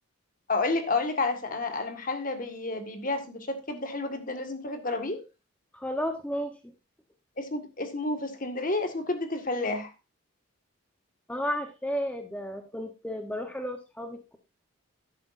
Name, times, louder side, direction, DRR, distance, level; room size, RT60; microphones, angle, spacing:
voice 1, 0.5-5.2 7.4-9.9, left 3 dB, 40° left, 1.7 m, -30 dB
voice 2, 5.7-6.6 11.3-14.4, equal, 5° left, 0.9 m, -33 dB
12.0 x 11.0 x 2.6 m
head